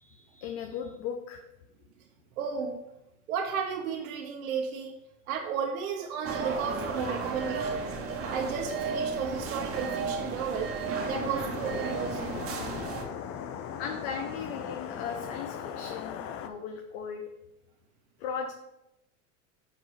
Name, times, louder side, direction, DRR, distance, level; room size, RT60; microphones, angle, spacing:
voice 1, 0.0-1.4 13.8-17.2 18.2-18.5, left 6 dB, 55° left, 4 dB, 0.9 m, -37 dB
voice 2, 2.4-2.8 3.3-4.9 5.3-7.9 8.3-12.4, right 6 dB, 85° right, 2 dB, 0.9 m, -33 dB
sound 1, 6.2-13.0, right 4 dB, 35° right, 1.3 m, -34 dB
sound 2, 9.6-15.4, right 2 dB, 5° right, 1.4 m, -51 dB
sound 3, 11.0-16.5, left 8 dB, 35° left, 0.5 m, -39 dB
6.2 x 4.9 x 4.9 m, 0.87 s
supercardioid pair, 120°, 41 cm